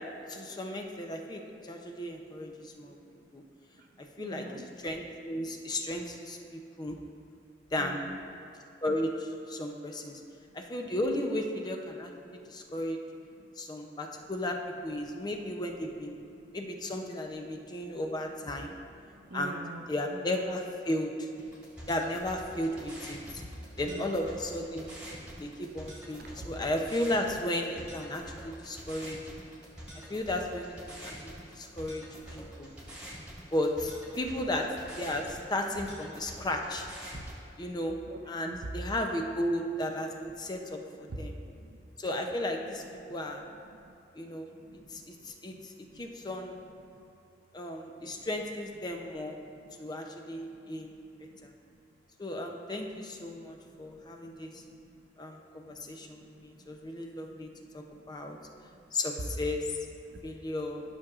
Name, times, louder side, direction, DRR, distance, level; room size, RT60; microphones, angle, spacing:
voice 1, 0.3-3.0 3.3-3.4 4.2-7.0 7.7-8.1 8.8-10.2 10.5-13.0 13.6-16.2 16.5-18.7 19.3-19.6 19.9-21.3 21.9-23.4 23.8-24.9 25.4-29.2 30.1-32.0 32.3-32.7 33.5-34.7 35.0-36.9 37.6-37.9 38.3-41.3 42.0-42.8 43.1-43.4 44.2-44.5 44.9-46.6 47.5-49.4 49.8-50.9 51.4-51.5 52.2-54.6 55.2-58.4 58.9-59.8 60.2-60.8, left 1 dB, 25° left, 3 dB, 0.5 m, -34 dB
voice 2, 3.7-4.7 7.8-8.2 10.2-10.6 11.2-11.4 12.3-12.6 13.3-13.5 14.2-14.3 15.0-15.5 16.2-16.7 17.6-18.0 18.6-20.3 21.5-21.7 23.2-24.3 25.1-25.4 26.1-26.5 31.0-31.8 32.4-33.2 36.3-36.5 37.1-37.3 38.0-38.7 40.6-40.7 41.0-41.8 42.6-42.7 43.0-43.2 43.7-43.9 44.6-47.1 48.0-48.3 49.5-49.9 50.6-51.8 52.9-53.0 53.3-55.0 55.7-58.8 60.1-60.2, right 2 dB, 55° right, 5 dB, 0.5 m, -50 dB
sound 1, 21.4-37.4, equal, 5° right, 1.5 m, -46 dB
12.5 x 6.1 x 2.4 m, 2.6 s
head